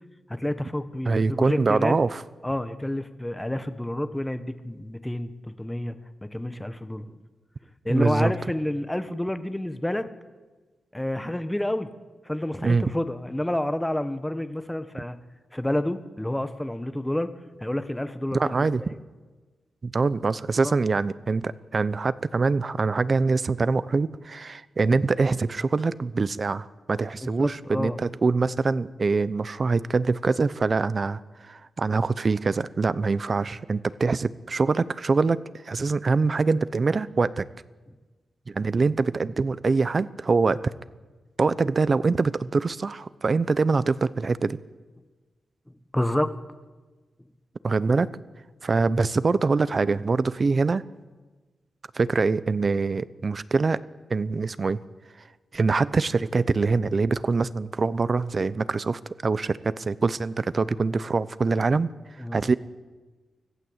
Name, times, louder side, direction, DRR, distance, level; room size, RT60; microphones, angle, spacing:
voice 1, 0.3-2.0 2.4-5.9 6.2-7.2 7.8-10.1 10.9-11.9 12.2-15.2 15.5-17.3 17.6-18.7 20.6-20.7 27.2-28.0 45.9-46.3 62.2-62.4, left 1 dB, 10° left, 10 dB, 1.3 m, -29 dB
voice 2, 1.1-2.2 7.9-8.3 12.6-12.8 18.3-18.8 19.8-37.5 38.5-40.6 41.4-44.6 47.6-48.1 48.6-50.8 51.9-53.8 54.1-54.8 55.5-61.9 62.3-62.6, right 4 dB, 40° right, 16 dB, 0.7 m, -24 dB
25.0 x 15.5 x 8.1 m, 1.3 s
wide cardioid pair, 105°, 0 cm